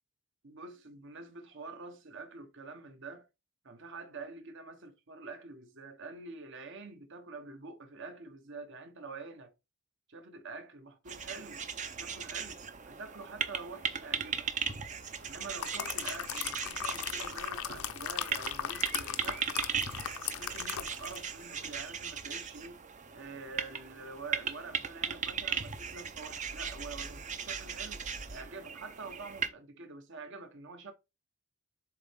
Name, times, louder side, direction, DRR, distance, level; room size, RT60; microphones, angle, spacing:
voice 1, 0.4-3.3 3.6-9.5 10.1-11.6 11.9-12.6 12.9-14.5 15.2-19.5 20.3-22.8 23.1-28.0 28.3-30.9, right 3 dB, 60° right, 1.3 m, -46 dB
sound 1, 11.1-29.5, right 6 dB, 35° right, 0.6 m, -38 dB
sound 2, 15.3-21.3 21.6-21.8, left 9 dB, 85° left, 0.7 m, -38 dB
7.2 x 4.2 x 3.6 m
head